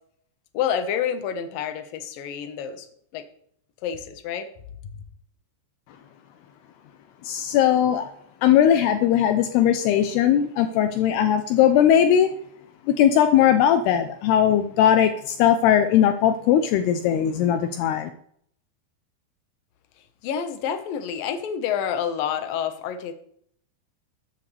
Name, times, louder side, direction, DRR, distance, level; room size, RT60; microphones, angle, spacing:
voice 1, 0.5-2.9 3.1-3.2 3.8-4.5 20.2-23.1, left 8 dB, 70° left, 8 dB, 2.3 m, -28 dB
voice 2, 7.2-8.1 8.4-12.3 12.9-18.1, left 10 dB, 85° left, 8 dB, 2.3 m, -19 dB
13.5 x 13.5 x 3.4 m, 0.65 s
omnidirectional pair, 5.6 m